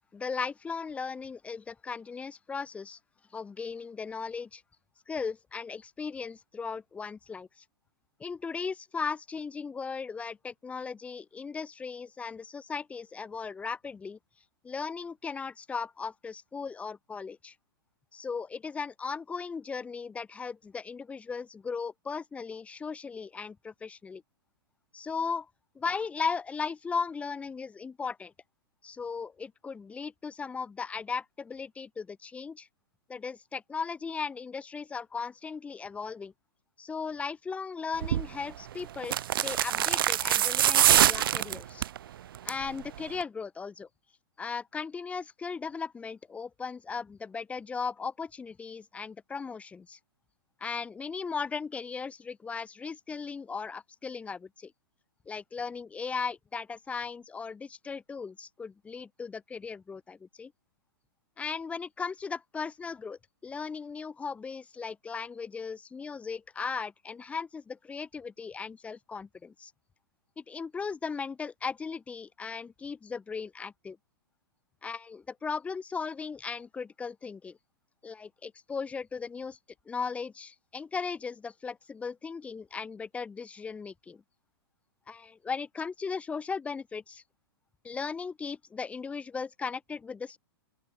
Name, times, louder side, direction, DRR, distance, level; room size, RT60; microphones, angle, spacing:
voice 1, 0.1-3.0 3.3-4.6 5.1-7.6 8.2-14.2 14.6-17.5 18.1-24.2 24.9-25.5 25.8-28.3 28.8-32.7 33.1-36.3 36.8-39.2 39.4-41.9 42.4-43.9 44.4-50.0 50.6-54.7 55.3-60.5 61.4-69.7 70.4-74.0 74.8-77.6 78.0-79.6 79.9-84.2 85.1-87.2 87.8-90.4, left 5 dB, 10° left, 0.5 m, -37 dB
sound 1, 38.0-38.3 39.0-42.0 42.3-42.7 43.0-43.1, right 11 dB, 65° right, 0.4 m, -24 dB
open air
figure-of-eight pair, 110°, 13 cm